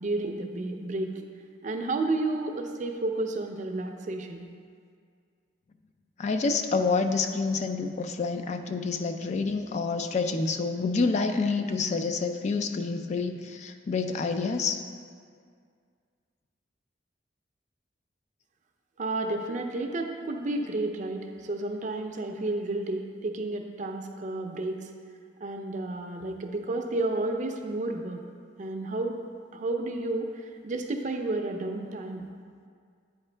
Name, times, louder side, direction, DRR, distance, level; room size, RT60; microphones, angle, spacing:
voice 1, 0.0-1.2 1.6-4.5 19.0-24.9 25.4-28.2 28.6-29.2 29.5-32.2, right 2 dB, 45° right, 4 dB, 0.5 m, -31 dB
voice 2, 6.2-14.8, left 4 dB, 40° left, 6 dB, 0.3 m, -28 dB
8.8 x 4.5 x 3.3 m, 2.1 s
head